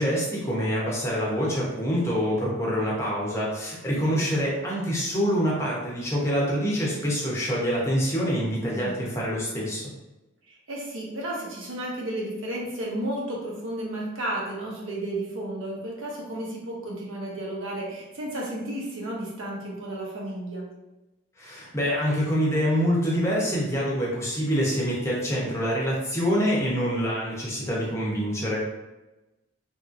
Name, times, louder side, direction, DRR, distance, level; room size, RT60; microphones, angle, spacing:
voice 1, 0.0-9.9 21.4-28.6, equal, 15° left, -5 dB, 0.6 m, -26 dB
voice 2, 4.1-4.5 8.8-9.1 10.5-20.6, right 1 dB, 75° right, -3 dB, 0.8 m, -33 dB
2.9 x 2.6 x 2.4 m, 1.0 s
head